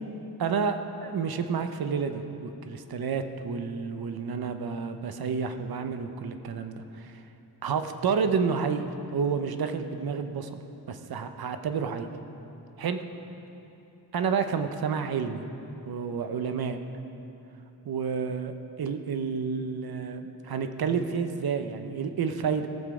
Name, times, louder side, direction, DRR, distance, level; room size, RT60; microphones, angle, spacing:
voice 1, 0.4-7.2 7.6-12.1 12.8-13.0 14.1-15.4 15.9-16.8 17.8-18.5 18.8-22.7, right 6 dB, 65° right, 8 dB, 0.8 m, -30 dB
17.5 x 7.3 x 4.9 m, 3.0 s
wide cardioid pair, 110°, 40 cm